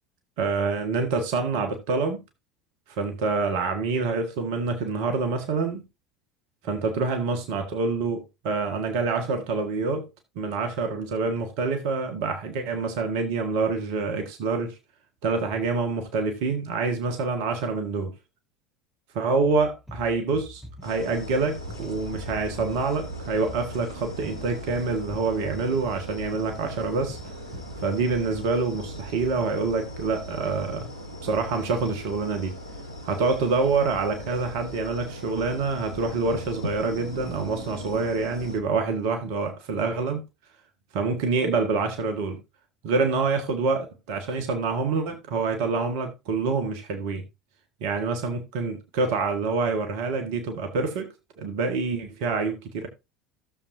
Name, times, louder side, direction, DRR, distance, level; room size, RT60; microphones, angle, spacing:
voice 1, 0.4-2.2 3.0-5.8 6.6-10.1 10.3-14.8 15.2-18.1 19.1-27.2 27.8-30.9 31.2-32.5 33.0-40.2 40.9-42.4 42.8-47.2 47.8-51.1 51.4-52.9, right 4 dB, 55° right, 1.6 m, -26 dB
sound 1, 19.4-29.0, right 1 dB, 5° right, 3.9 m, -45 dB
sound 2, 20.8-38.6, equal, 90° right, 1.5 m, -39 dB
15.0 x 7.2 x 2.6 m
figure-of-eight pair, 70°, 3 cm